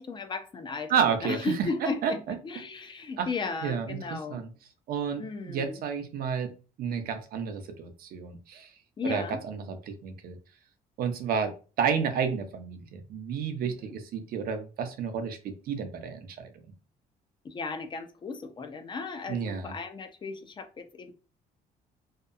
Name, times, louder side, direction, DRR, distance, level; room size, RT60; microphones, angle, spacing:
voice 1, 0.0-4.4 5.2-5.8 9.0-9.4 13.8-13.9 17.4-21.1, left 4 dB, 30° left, 7 dB, 0.4 m, -35 dB
voice 2, 0.9-2.1 3.2-3.3 3.6-4.5 4.9-6.5 6.8-8.7 9.0-10.4 11.0-16.5 19.3-19.7, right 7 dB, 60° right, 7 dB, 0.5 m, -31 dB
2.7 x 2.2 x 2.4 m, 0.35 s
cardioid pair, 110°, 17 cm